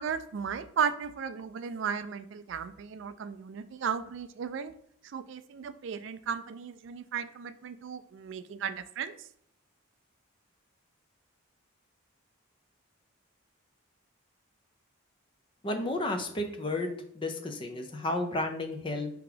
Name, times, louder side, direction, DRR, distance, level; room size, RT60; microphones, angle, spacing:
voice 1, 0.0-4.7 5.0-9.3, right 7 dB, 60° right, 11 dB, 0.3 m, -35 dB
voice 2, 15.6-16.9 17.1-19.1, left 2 dB, 25° left, 4 dB, 0.4 m, -32 dB
4.6 x 2.9 x 3.8 m, 0.66 s
head